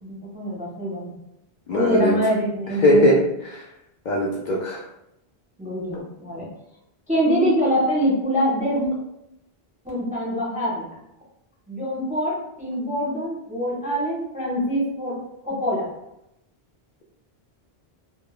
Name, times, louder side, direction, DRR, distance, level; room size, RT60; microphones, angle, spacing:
voice 1, 0.0-1.1 1.7-3.2 5.6-6.5 7.1-8.9 9.8-10.9 11.7-15.2 15.4-15.9, equal, 10° right, -6 dB, 0.5 m, -24 dB
voice 2, 1.7-2.1 2.8-3.1 3.4-3.6 4.1-4.8, left 1 dB, 55° left, -5 dB, 0.5 m, -19 dB
2.1 x 2.0 x 3.0 m, 0.83 s
omnidirectional pair, 1.0 m